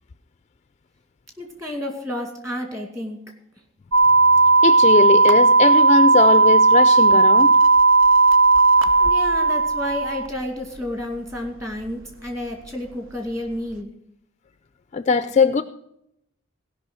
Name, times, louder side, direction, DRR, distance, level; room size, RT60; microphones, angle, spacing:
voice 1, 1.4-3.2 9.0-13.9, left 1 dB, 15° right, 2.2 m, -31 dB
sound 1, 3.9-10.3, right 3 dB, 60° right, 0.9 m, -15 dB
voice 2, 4.6-7.5 14.9-15.6, left 4 dB, 30° left, 0.4 m, -19 dB
17.0 x 5.7 x 6.1 m
head